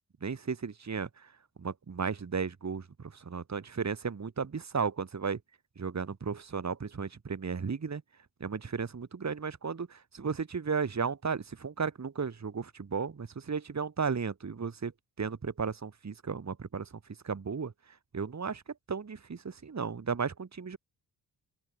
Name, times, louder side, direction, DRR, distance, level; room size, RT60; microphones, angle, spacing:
voice 1, 0.2-1.3 1.6-5.4 5.8-8.0 8.4-14.9 15.2-16.9 17.2-17.7 18.1-18.6 18.9-20.8, right 5 dB, 40° right, 2.3 m, -34 dB
open air
supercardioid pair, 45°, 44 cm